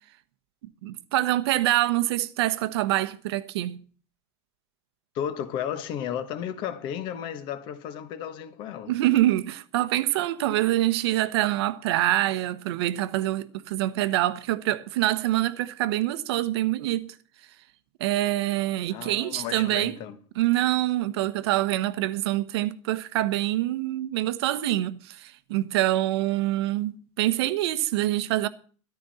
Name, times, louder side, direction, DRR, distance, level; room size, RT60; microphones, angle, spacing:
voice 1, 0.8-3.8 8.9-17.2 18.0-20.0 20.4-28.5, right 15 dB, 55° right, 1.1 m, -25 dB
voice 2, 5.1-8.9 18.9-20.2, left 9 dB, 30° left, 1.3 m, -33 dB
13.5 x 13.5 x 4.2 m
supercardioid pair, 180°, 16 cm